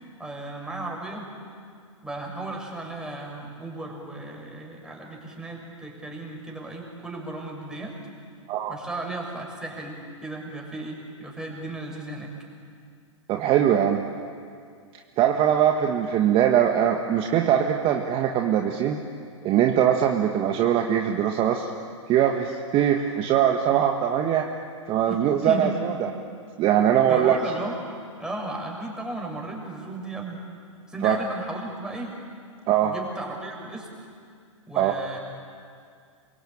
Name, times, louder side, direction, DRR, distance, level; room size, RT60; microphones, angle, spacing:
voice 1, 0.2-1.3 2.0-8.0 8.7-12.3 25.1-25.7 27.1-27.7 28.2-30.4 30.9-32.1 32.8-33.9 34.7-35.2, right 2 dB, 5° right, -1 dB, 6.5 m, -35 dB
voice 2, 13.3-14.0 15.2-19.0 19.4-21.7 22.1-24.5 24.9-26.1 26.6-27.4 31.0-31.2 32.7-32.9 34.8-34.9, right 10 dB, 35° right, 3 dB, 1.8 m, -21 dB
27.5 x 23.5 x 9.0 m, 2.2 s
hypercardioid pair, 115°, 17 cm